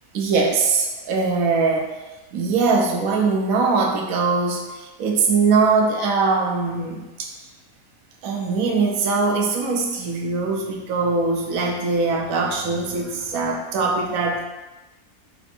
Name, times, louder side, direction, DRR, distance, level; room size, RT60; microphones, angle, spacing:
voice 1, 0.1-2.0 2.3-7.3 8.2-14.4, right 4 dB, 70° right, 1 dB, 1.1 m, -21 dB
4.3 x 2.7 x 4.2 m, 1.1 s
omnidirectional pair, 1.6 m